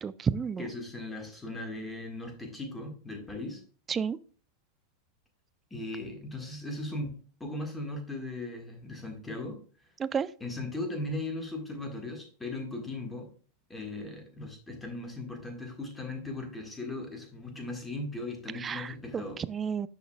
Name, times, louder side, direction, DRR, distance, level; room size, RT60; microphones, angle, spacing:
voice 1, 0.0-0.6 3.9-4.2 10.0-10.3 18.6-19.9, right 6 dB, 20° right, 0.3 m, -31 dB
voice 2, 0.6-3.6 5.7-9.6 10.4-13.3 13.7-19.4, left 2 dB, 10° left, 1.7 m, -38 dB
10.0 x 4.9 x 2.3 m
figure-of-eight pair, 90°, 0 cm